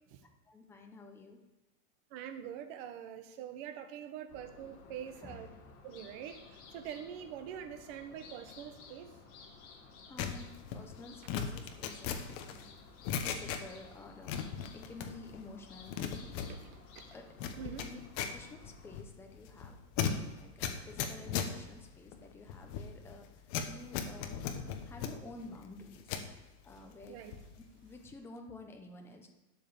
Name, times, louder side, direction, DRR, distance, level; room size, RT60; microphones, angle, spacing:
voice 1, 0.5-1.4 5.1-5.8 8.9-9.1 9.4-9.5 10.1-12.3 13.2-14.5 14.7-16.3 17.1-18.0 18.3-19.8 20.4-23.3 23.7-24.5 24.8-27.2 27.8-29.3, left 3 dB, 5° left, 3 dB, 0.7 m, -51 dB
voice 2, 2.1-5.5 5.8-9.1 10.4-10.5 16.5-17.1 17.6-17.9 27.1-27.4, right 9 dB, 40° right, 8 dB, 1.3 m, -45 dB
sound 1, 4.3-19.0, left 4 dB, 50° left, 3.0 m, -56 dB
sound 2, 10.2-13.9 14.2-15.4 15.7-26.3 26.7-27.6 27.8-28.1, left 7 dB, 35° left, 1.1 m, -38 dB
12.0 x 5.4 x 7.0 m, 1.2 s
supercardioid pair, 160°, 46 cm